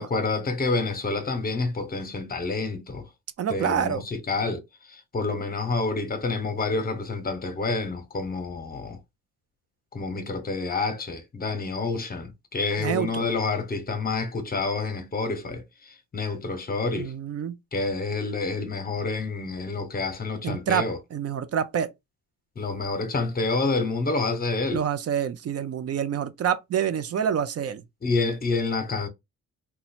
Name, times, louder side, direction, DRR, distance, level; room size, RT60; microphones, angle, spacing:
voice 1, 0.0-3.1 3.5-4.6 4.9-9.0 9.9-17.1 17.7-21.0 22.6-24.8 28.0-29.1, left 3 dB, 30° left, 0.9 m, -28 dB
voice 2, 3.4-4.0 12.8-13.3 17.0-17.6 20.4-21.9 24.7-27.8, right 8 dB, 55° right, 0.6 m, -27 dB
2.8 x 2.3 x 4.2 m
cardioid pair, 90°, 30 cm